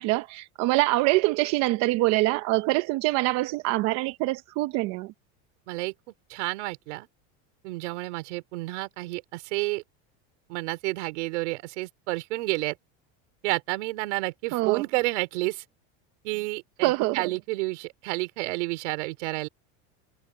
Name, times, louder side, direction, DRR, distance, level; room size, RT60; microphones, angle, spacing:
voice 1, 0.0-5.1 14.5-14.8 16.8-17.2, right 20 dB, 50° right, 0.9 m, -24 dB
voice 2, 6.3-7.1 7.6-9.8 10.5-12.8 13.4-15.6 16.2-19.5, right 23 dB, 80° right, 4.4 m, -30 dB
supercardioid pair, 160°, 35 cm